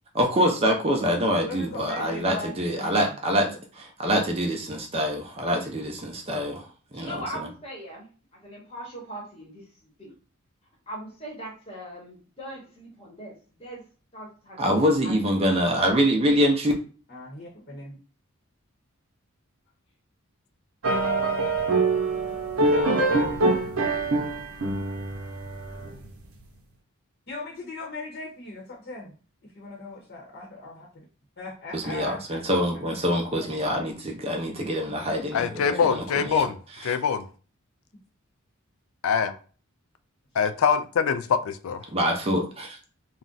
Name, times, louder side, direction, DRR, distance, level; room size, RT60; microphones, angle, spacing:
voice 1, 0.1-7.5 14.6-16.7 31.7-36.4 36.7-37.0 41.9-42.8, equal, 25° right, 2 dB, 0.6 m, -25 dB
voice 2, 1.4-3.6 17.1-18.0 27.3-29.2 29.4-31.1 31.4-32.4 34.9-35.0 35.7-36.5, left 2 dB, 50° left, -3 dB, 0.8 m, -39 dB
voice 3, 6.9-10.1 10.9-13.3 13.6-13.8 14.1-14.6 15.0-15.2 33.4-34.1, right 1 dB, 25° left, -3 dB, 0.9 m, -40 dB
sound 1, 20.8-26.1, right 2 dB, 75° right, 0.7 m, -24 dB
voice 4, 35.3-36.6 36.8-37.2 39.0-39.3 40.4-41.8, left 6 dB, 70° left, 10 dB, 0.3 m, -24 dB
2.4 x 2.1 x 3.8 m, 0.38 s
head